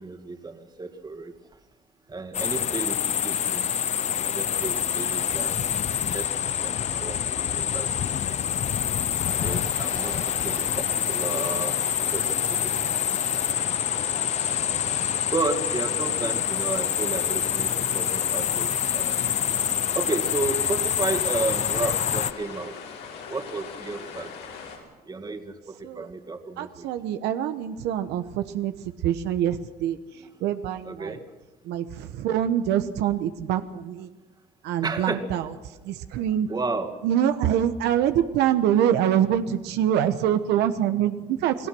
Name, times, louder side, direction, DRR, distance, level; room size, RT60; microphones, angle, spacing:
voice 1, 0.0-1.3 2.1-3.6 4.2-5.8 6.1-7.4 7.7-8.5 9.4-11.8 12.1-13.2 15.3-19.2 19.9-22.7 23.3-24.3 25.1-26.9 30.2-30.3 30.8-31.2 34.8-35.3 36.5-37.0, right 3 dB, 25° right, 6 dB, 2.4 m, -32 dB
sound 1, 2.3-22.3, left 9 dB, 40° left, 0.6 m, -26 dB
sound 2, 9.2-24.8, left 6 dB, 85° left, 6.0 m, -40 dB
voice 2, 26.6-28.7 29.0-30.0 30.4-31.2 31.7-34.1 34.6-35.5 35.8-36.5 37.0-41.7, right 10 dB, 85° right, 9 dB, 1.2 m, -25 dB
29.5 x 18.5 x 6.2 m, 1.1 s
cardioid pair, 110°, 17 cm